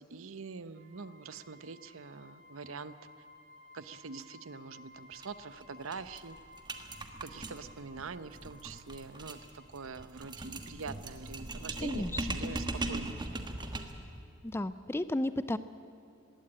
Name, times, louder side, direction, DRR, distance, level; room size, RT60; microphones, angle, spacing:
voice 1, 0.0-2.9 3.7-6.4 7.2-13.2, right 4 dB, 70° right, 14 dB, 0.8 m, -44 dB
sound 1, 0.7-12.2, left 2 dB, 45° right, 5.4 m, -58 dB
sound 2, 5.1-5.3 5.6-5.7 5.9-14.1, right 2 dB, 20° right, 1.3 m, -39 dB
voice 2, 11.8-12.2 14.4-15.6, left 1 dB, 10° left, 13 dB, 0.4 m, -33 dB
21.0 x 16.5 x 8.9 m, 2.7 s
head